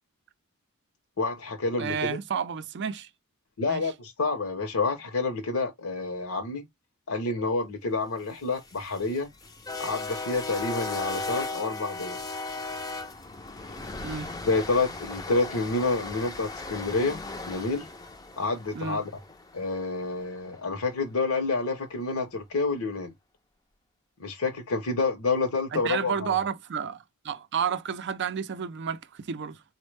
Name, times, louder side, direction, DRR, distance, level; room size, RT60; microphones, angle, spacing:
voice 1, 1.2-2.2 3.6-6.6 7.1-9.3 9.8-12.2 14.5-17.9 18.4-19.0 19.5-23.1 24.2-26.3, left 3 dB, 65° left, 0.7 m, -28 dB
voice 2, 1.8-3.1 3.7-3.8 14.0-14.4 18.7-19.1 25.7-29.6, right 7 dB, 50° right, 0.5 m, -31 dB
sound 1, 8.4-20.6, left 3 dB, 15° left, 0.4 m, -37 dB
4.2 x 2.1 x 3.1 m
head